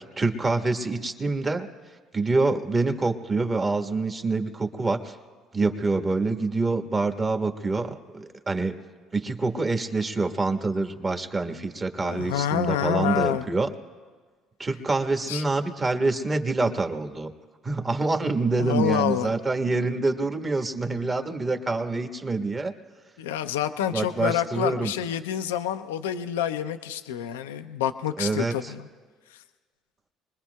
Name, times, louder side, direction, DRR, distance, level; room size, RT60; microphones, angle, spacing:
voice 1, 0.2-1.7 2.1-5.1 5.5-8.7 9.1-13.7 14.6-17.3 17.6-22.7 23.9-24.9 28.2-28.7, right 3 dB, 30° right, 6 dB, 1.4 m, -26 dB
voice 2, 12.0-13.5 15.3-15.4 18.6-19.3 23.2-28.9 29.3-29.4, left 10 dB, 85° left, 9 dB, 0.5 m, -28 dB
26.0 x 21.0 x 2.3 m, 1.5 s
hypercardioid pair, 65°, 0 cm